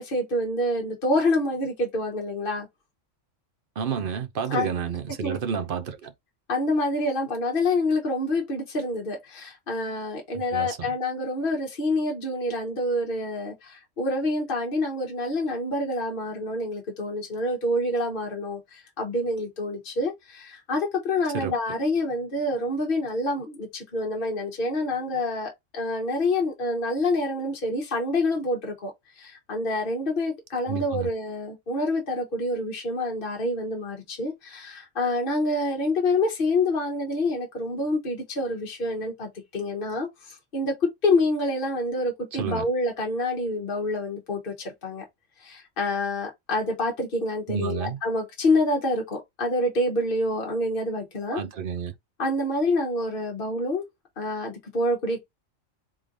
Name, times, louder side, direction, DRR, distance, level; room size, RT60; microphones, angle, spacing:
voice 1, 0.0-2.7 4.5-4.7 5.2-5.4 6.5-45.0 45.4-51.4 52.2-53.8 54.2-55.2, left 2 dB, 45° left, 1.3 m, -27 dB
voice 2, 3.8-6.1 10.3-10.9 21.3-21.5 30.7-31.1 42.3-42.7 47.5-48.0 51.3-51.9, right 7 dB, 50° right, 0.8 m, -30 dB
3.8 x 3.3 x 3.8 m
omnidirectional pair, 1.3 m